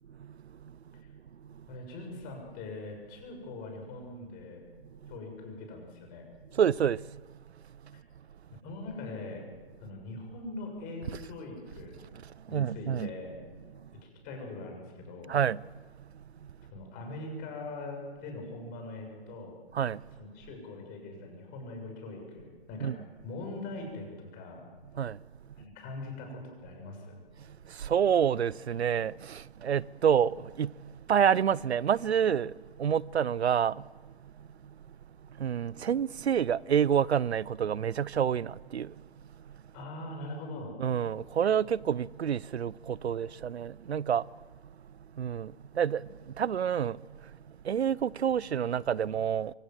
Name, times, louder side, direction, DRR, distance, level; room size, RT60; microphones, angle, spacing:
voice 1, 1.7-4.6 5.1-6.3 7.9-8.0 8.6-9.5 9.8-11.9 12.5-13.4 14.0-15.4 16.7-19.6 20.1-22.9 23.2-24.7 25.6-27.2 39.7-40.7, left 2 dB, 30° left, 6.7 m, -42 dB
voice 2, 6.6-7.0 12.5-13.1 15.3-15.6 19.8-20.0 22.8-23.0 25.0-25.1 27.9-29.1 29.6-30.7 31.1-32.5 32.8-33.7 35.4-38.9 40.8-44.2 45.2-45.5 45.8-46.0 46.4-47.0 47.7-49.5, right 8 dB, 85° right, 0.6 m, -27 dB
24.0 x 17.5 x 7.4 m
hypercardioid pair, 135°, 32 cm